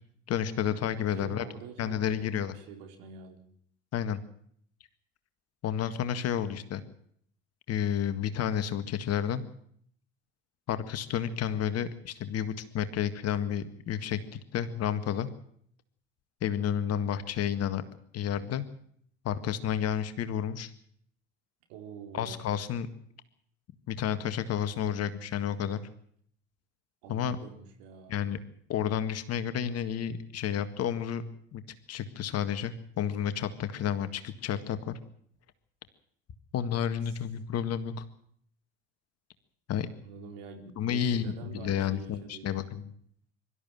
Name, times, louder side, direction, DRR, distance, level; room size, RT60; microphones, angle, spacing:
voice 1, 0.3-1.5 1.8-2.5 3.9-4.2 5.6-6.8 7.7-9.4 10.7-14.2 14.5-15.3 16.4-17.8 18.1-18.6 19.2-20.7 22.1-22.9 23.9-25.8 27.1-27.4 28.1-28.4 28.7-31.2 31.5-31.6 31.9-34.9 36.5-37.9 39.7-39.9 40.8-42.9, left 9 dB, 45° left, 11 dB, 1.9 m, -31 dB
voice 2, 1.1-3.5 21.7-22.5 27.0-28.3 37.0-37.1 40.0-42.6, right 6 dB, 60° right, 4 dB, 4.2 m, -46 dB
23.5 x 13.0 x 9.0 m, 0.64 s
figure-of-eight pair, 65°, 35 cm